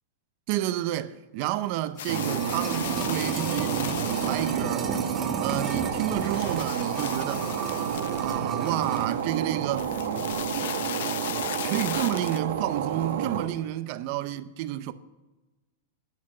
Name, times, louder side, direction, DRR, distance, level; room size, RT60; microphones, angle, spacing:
voice 1, 0.5-4.9 5.4-7.5 8.2-9.9 11.6-14.9, right 14 dB, 40° right, 0.6 m, -30 dB
sound 1, 1.7-9.2 9.4-9.5, right 5 dB, 15° right, 1.0 m, -35 dB
sound 2, 2.0-4.8 5.4-9.4 9.7-12.4, left 11 dB, 65° left, 0.5 m, -37 dB
sound 3, 2.1-13.5, right 8 dB, 70° right, 1.5 m, -30 dB
10.5 x 8.2 x 7.6 m
supercardioid pair, 170°, 0 cm